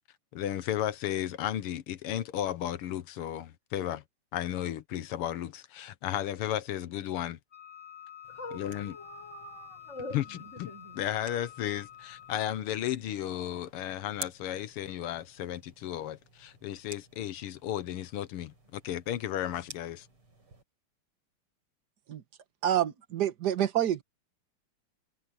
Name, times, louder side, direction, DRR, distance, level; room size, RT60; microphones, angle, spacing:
voice 1, 0.3-4.0 4.3-7.4 8.5-9.0 10.1-10.7 11.0-20.1, left 11 dB, 85° left, 1.9 m, -34 dB
Wind instrument woodwind instrument, 7.5-12.7, left 11 dB, 10° left, 6.8 m, -49 dB
sound 1, 8.2-20.6, right 3 dB, 75° right, 7.3 m, -52 dB
voice 2, 8.3-8.6 8.9-11.0, left 1 dB, 30° left, 6.6 m, -44 dB
voice 3, 22.6-24.0, right 11 dB, 50° right, 1.6 m, -27 dB
omnidirectional pair, 2.4 m